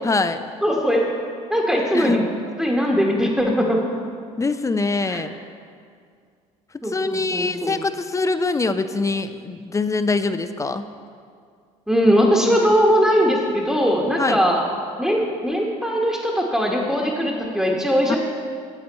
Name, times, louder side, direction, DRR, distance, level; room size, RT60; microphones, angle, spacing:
voice 1, 0.0-0.4 1.9-2.3 4.4-5.3 6.8-10.8 14.2-14.4 18.1-18.2, left 3 dB, 15° left, 10 dB, 0.5 m, -23 dB
voice 2, 0.6-1.1 1.5-2.2 2.6-3.8 5.1-5.2 6.8-7.7 11.9-14.6 15.0-18.2, equal, 5° right, -2 dB, 1.2 m, -20 dB
9.0 x 7.3 x 4.1 m, 2.2 s
hypercardioid pair, 70°, 18 cm